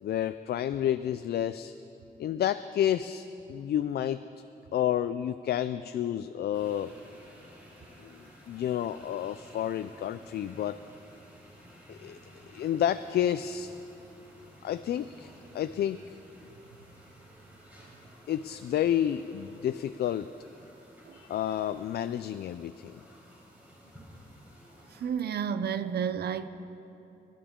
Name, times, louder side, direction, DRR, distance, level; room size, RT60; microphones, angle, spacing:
voice 1, 0.0-1.7 2.2-4.2 4.7-6.9 8.0-8.2 8.5-10.8 11.9-12.2 12.5-13.7 14.6-16.2 18.3-20.3 21.1-22.9, left 10 dB, 75° left, 11 dB, 0.4 m, -30 dB
sound 1, 6.5-25.1, equal, 10° right, 4.4 m, -54 dB
voice 2, 24.9-26.5, right 7 dB, 80° right, 11 dB, 0.7 m, -31 dB
27.0 x 12.0 x 3.7 m, 2.8 s
wide cardioid pair, 170°, 16 cm